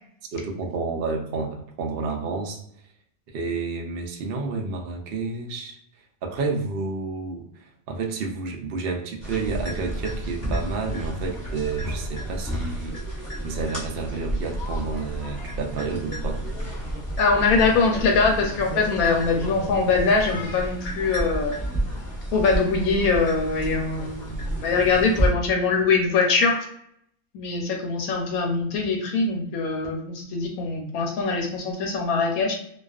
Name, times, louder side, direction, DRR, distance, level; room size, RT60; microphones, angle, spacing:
voice 1, 0.3-2.6 3.3-5.8 6.2-16.4, right 4 dB, 75° right, 1 dB, 0.5 m, -30 dB
sound 1, 9.2-25.3, right 1 dB, 10° left, 0.9 m, -30 dB
voice 2, 17.2-21.6 22.3-24.4 24.6-26.7 27.3-32.5, left 4 dB, 80° left, 1 dB, 1.1 m, -22 dB
2.4 x 2.3 x 2.3 m, 0.70 s
omnidirectional pair, 1.5 m